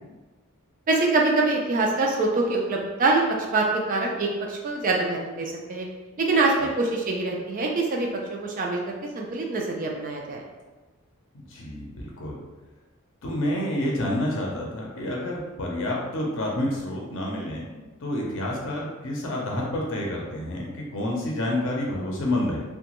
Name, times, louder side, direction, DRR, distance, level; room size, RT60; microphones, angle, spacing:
voice 1, 0.9-3.2 3.5-5.9 6.2-10.4, right 3 dB, 35° right, 0 dB, 0.3 m, -24 dB
voice 2, 11.3-12.4 13.2-22.6, left 1 dB, 55° left, -2 dB, 0.6 m, -29 dB
2.9 x 2.2 x 2.9 m, 1.2 s
head